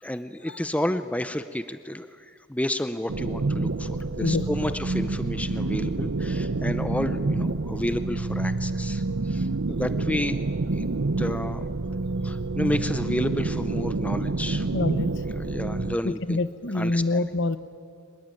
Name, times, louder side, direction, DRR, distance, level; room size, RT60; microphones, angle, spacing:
voice 1, 0.0-10.4 10.7-10.9 11.2-11.6 12.2-14.7 15.4-16.4 16.7-17.2, left 1 dB, 5° left, 11 dB, 0.6 m, -31 dB
sound 1, 3.1-16.0, right 3 dB, 65° right, 0.7 m, -28 dB
voice 2, 4.2-4.7 14.7-15.1 16.0-17.6, left 2 dB, 55° left, 13 dB, 1.0 m, -26 dB
24.0 x 21.0 x 9.1 m, 2.3 s
head